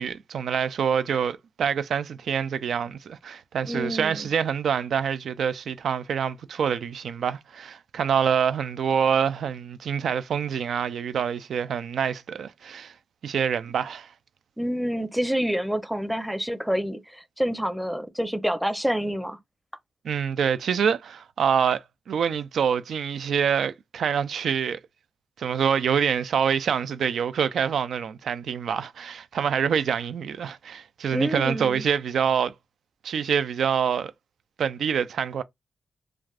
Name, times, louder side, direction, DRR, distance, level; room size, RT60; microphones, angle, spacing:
voice 1, 0.0-12.9 13.2-14.1 20.0-24.8 25.4-32.5 33.0-34.1 34.6-35.4, right 7 dB, 85° right, 0.3 m, -26 dB
voice 2, 3.7-4.3 14.6-19.4 31.1-31.9, equal, 5° right, 0.6 m, -27 dB
3.2 x 2.4 x 2.4 m
cardioid pair, 80°, 0 cm